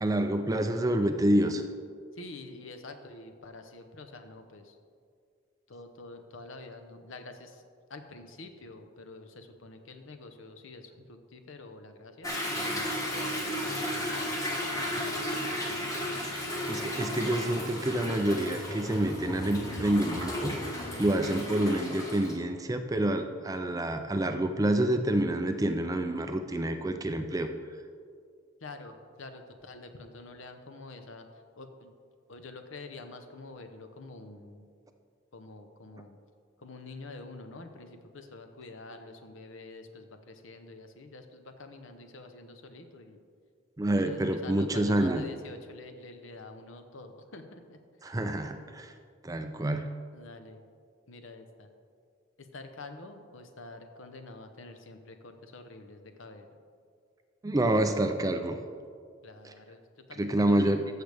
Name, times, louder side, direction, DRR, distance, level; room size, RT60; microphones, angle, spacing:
voice 1, 0.0-1.6 16.7-27.5 43.8-45.2 48.0-48.9 49.2-49.8 57.4-58.6 59.4-59.5 60.2-60.8, right 1 dB, 15° right, 7 dB, 0.4 m, -28 dB
voice 2, 2.1-4.8 5.7-7.6 7.9-12.3 12.8-14.4 14.9-15.9 28.6-31.3 31.6-31.9 32.3-34.6 35.3-36.2 36.6-43.2 43.9-47.8 50.1-50.6 51.1-51.7 52.4-56.6 59.2-59.8 60.1-60.9, left 2 dB, 65° left, 7 dB, 0.8 m, -47 dB
Toilet flush / Drip / Trickle dribble, 12.2-22.3, left 1 dB, 15° left, 1.2 m, -34 dB
14.5 x 6.6 x 3.4 m, 2.2 s
head